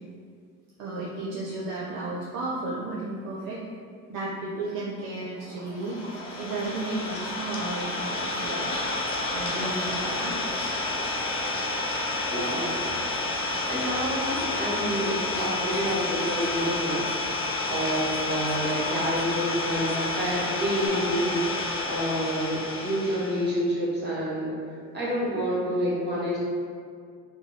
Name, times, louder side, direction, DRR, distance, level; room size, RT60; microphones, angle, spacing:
voice 1, 0.8-3.6 4.1-6.0 6.4-8.7 9.3-10.8, right 2 dB, 55° right, -5 dB, 0.6 m, -33 dB
Livestock farm animals working animals, 5.4-20.9, equal, 10° left, 1.5 m, -43 dB
Idling, 5.8-23.5, left 2 dB, 65° left, 0.8 m, -30 dB
voice 2, 9.5-10.0 12.3-12.8 13.7-17.1 17.7-24.5 24.9-26.4, equal, 25° right, -7 dB, 1.5 m, -28 dB
2.9 x 2.1 x 3.9 m, 2.1 s
hypercardioid pair, 60°, 39 cm